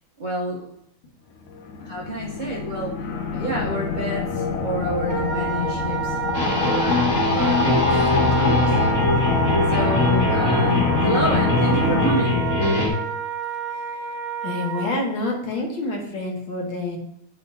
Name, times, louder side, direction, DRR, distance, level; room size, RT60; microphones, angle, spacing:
voice 1, 0.2-0.7 1.8-3.0 3.3-8.7 9.7-12.5, right 1 dB, 80° right, -4 dB, 0.4 m, -29 dB
sound 1, 1.5-12.1, left 4 dB, 90° left, 1.7 m, -25 dB
Wind instrument woodwind instrument, 5.1-14.9, right 7 dB, 65° right, 1.3 m, -30 dB
sound 2, 6.3-12.9, left 2 dB, 40° left, 1.8 m, -22 dB
voice 2, 14.4-17.0, left 2 dB, 70° left, 0 dB, 1.9 m, -27 dB
9.9 x 4.3 x 2.7 m, 0.74 s
omnidirectional pair, 2.3 m